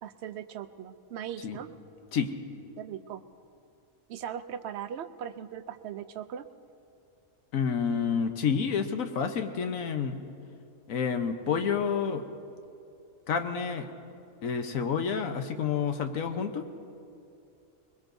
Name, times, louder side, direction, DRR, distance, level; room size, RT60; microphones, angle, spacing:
voice 1, 0.0-1.7 2.8-3.2 4.1-6.5, right 9 dB, 65° right, 11 dB, 0.8 m, -39 dB
voice 2, 7.5-10.2 10.9-12.3 13.3-13.9 14.4-16.7, left 6 dB, 75° left, 7 dB, 1.3 m, -29 dB
22.0 x 21.5 x 2.6 m, 2.6 s
omnidirectional pair, 1.4 m